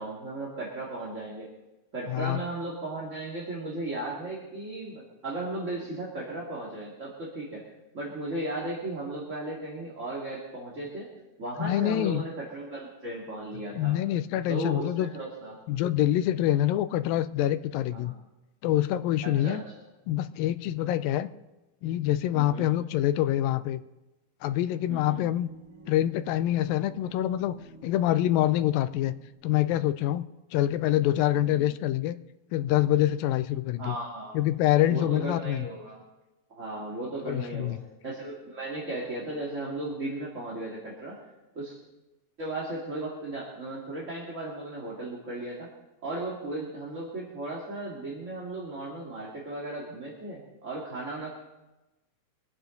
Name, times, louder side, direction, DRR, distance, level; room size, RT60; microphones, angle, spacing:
voice 1, 0.0-1.5 1.9-7.6 7.9-11.1 11.4-14.0 14.5-15.6 18.0-18.2 19.2-19.6 22.3-22.7 24.9-25.2 31.3-31.7 33.8-34.4 34.8-36.0 36.5-37.8 38.0-41.2 41.5-41.8 42.4-45.7 46.0-51.3, right 2 dB, 25° right, -4 dB, 2.2 m, -36 dB
voice 2, 2.1-2.4 11.6-12.2 13.7-15.1 15.7-18.1 18.6-19.6 20.1-21.3 21.8-23.8 24.4-25.5 25.9-27.6 27.8-29.1 29.4-30.3 30.5-32.2 32.5-34.0 34.3-35.7 37.3-37.8, left 13 dB, 85° left, 12 dB, 2.4 m, -26 dB
sound 1, 24.9-29.7, right 2 dB, 65° right, 4.2 m, -51 dB
24.5 x 9.3 x 3.9 m, 1.0 s
omnidirectional pair, 3.9 m